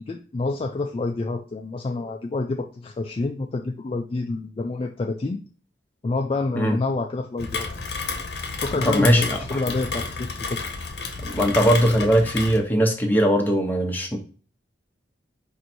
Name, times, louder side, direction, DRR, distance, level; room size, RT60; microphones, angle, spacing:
voice 1, 0.1-5.4 6.0-7.7 8.6-10.6, left 3 dB, 30° left, 3 dB, 0.3 m, -28 dB
Rain, 7.4-12.6, left 4 dB, 65° left, 0.8 m, -31 dB
voice 2, 8.9-9.6 11.2-14.2, equal, 10° left, 2 dB, 0.8 m, -20 dB
4.6 x 2.6 x 4.3 m, 0.39 s
head